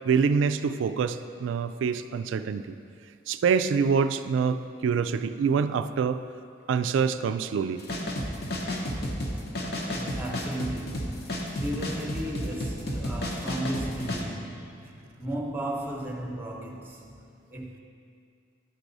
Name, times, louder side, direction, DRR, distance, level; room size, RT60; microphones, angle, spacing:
voice 1, 0.0-2.8 3.3-6.2 6.7-7.8, right 6 dB, 80° right, 11 dB, 0.3 m, -26 dB
sound 1, 7.8-14.2, left 1 dB, 55° left, 0.9 m, -32 dB
voice 2, 9.8-17.2 17.5-17.8, right 1 dB, 10° right, -1 dB, 0.8 m, -35 dB
10.5 x 4.8 x 4.0 m, 2.4 s
head